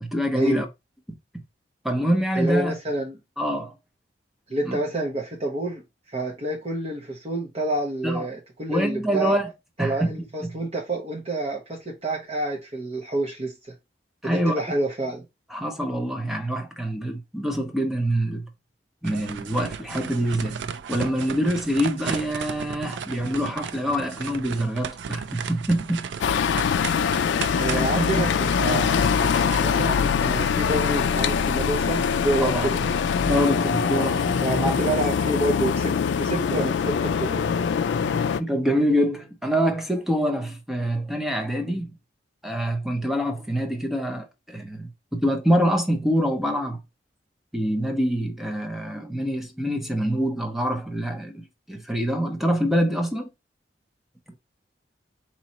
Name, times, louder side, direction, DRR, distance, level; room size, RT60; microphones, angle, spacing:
voice 1, 0.0-0.7 1.8-2.8 3.4-3.7 4.7-4.8 8.0-8.3 8.7-9.5 9.8-10.1 14.2-14.5 15.5-18.5 19.0-26.1 27.0-27.1 27.7-27.8 28.1-28.2 32.4-32.7 33.3-34.8 38.4-41.9 42.4-46.8 47.5-53.3, equal, ahead, 0.7 m, -25 dB
voice 2, 2.3-3.2 4.5-5.8 6.1-9.4 9.8-13.5 14.2-15.2 27.5-29.1 29.6-32.8 33.8-37.4, right 1 dB, 35° right, 0.9 m, -28 dB
sound 1, 19.0-30.6, right 7 dB, 80° right, 0.4 m, -35 dB
sound 2, 26.2-38.4, left 6 dB, 85° left, 0.3 m, -23 dB
4.1 x 3.0 x 2.8 m
head